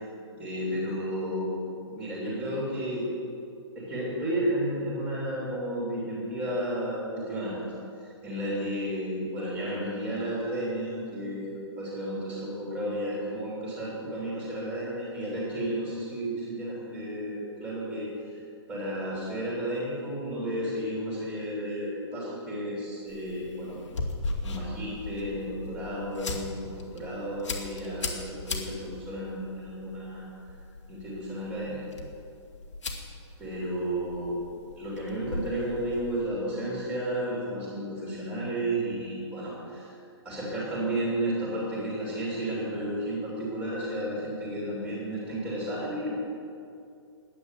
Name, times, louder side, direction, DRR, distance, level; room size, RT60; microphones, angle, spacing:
voice 1, 0.4-1.5 1.9-3.1 3.7-7.6 7.9-18.4 18.7-23.8 24.4-30.3 30.9-31.8 33.4-34.4 34.8-40.0 40.2-46.1, right 1 dB, 5° right, -6 dB, 3.0 m, -32 dB
sound 1, 23.1-36.3, left 3 dB, 85° left, 2.4 m, -38 dB
10.5 x 10.0 x 8.2 m, 2.5 s
hypercardioid pair, 170°, 15 cm